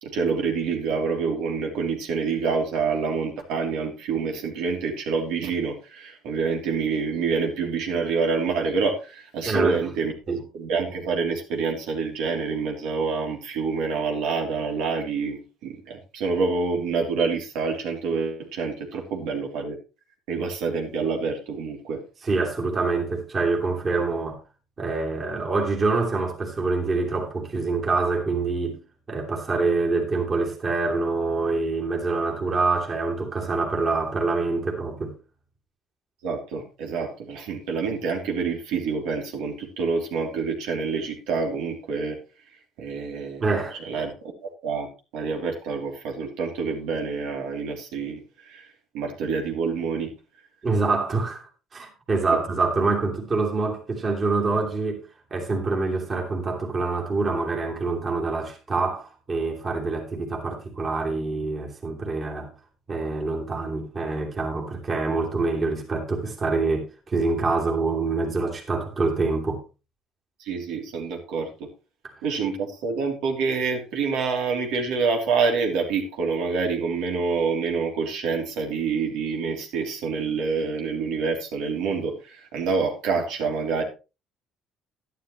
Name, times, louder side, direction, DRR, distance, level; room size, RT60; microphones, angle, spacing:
voice 1, 0.0-10.1 10.5-19.8 20.3-22.0 36.2-42.2 42.8-43.4 43.8-44.1 44.6-44.9 45.1-48.7 48.9-50.1 70.4-71.7 72.2-83.8, right 5 dB, 85° right, 3.3 m, -27 dB
voice 2, 9.4-9.8 10.3-10.4 22.2-24.4 24.8-28.8 29.1-35.2 43.4-43.8 50.6-55.0 55.3-62.5 62.9-69.6, right 3 dB, 30° right, 2.9 m, -25 dB
11.5 x 11.5 x 3.2 m
cardioid pair, 140°, 0 cm